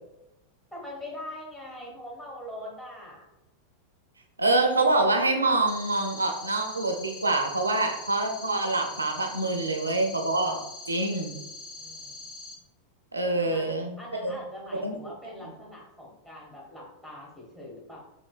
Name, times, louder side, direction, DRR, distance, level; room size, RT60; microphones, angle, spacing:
voice 1, 0.7-3.2 11.8-12.3 13.4-13.7 14.0-18.0, left 1 dB, 10° left, -5 dB, 1.3 m, -42 dB
voice 2, 4.4-10.6 10.9-11.3 13.1-14.4 14.8-14.9 15.4-15.5, right 2 dB, 80° right, 3 dB, 0.4 m, -26 dB
sound 1, 5.7-12.5, left 3 dB, 65° left, 0.8 m, -43 dB
3.2 x 2.9 x 2.3 m, 0.92 s
figure-of-eight pair, 90°, 0 cm